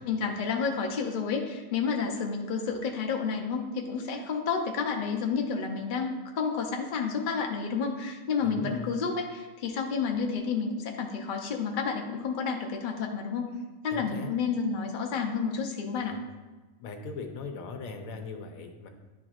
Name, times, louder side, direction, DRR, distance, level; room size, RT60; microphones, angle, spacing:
voice 1, 0.0-13.5 13.8-16.1, left 5 dB, 45° left, 2 dB, 0.8 m, -30 dB
voice 2, 8.4-8.9 13.9-14.3 15.9-16.2 16.8-18.9, left 4 dB, 80° left, 5 dB, 1.1 m, -39 dB
10.5 x 4.4 x 2.5 m, 1.2 s
omnidirectional pair, 1.4 m